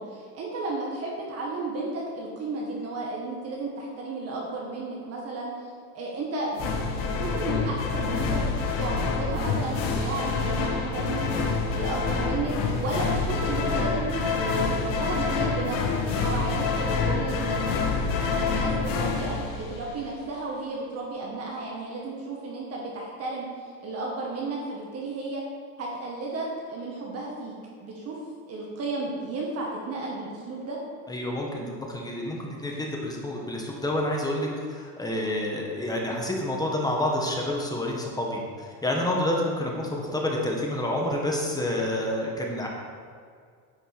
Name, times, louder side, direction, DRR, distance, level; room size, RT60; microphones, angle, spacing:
voice 1, 0.0-5.5 5.9-8.4 8.8-25.5 25.8-27.5 27.8-28.2 28.5-30.8, right 2 dB, 40° right, -2 dB, 1.8 m, -33 dB
sound 1, 6.6-20.2, left 4 dB, 60° left, 1.7 m, -27 dB
voice 2, 31.1-42.7, left 1 dB, 10° left, -1 dB, 1.7 m, -28 dB
10.0 x 5.4 x 6.8 m, 2.1 s
cardioid pair, 135°, 37 cm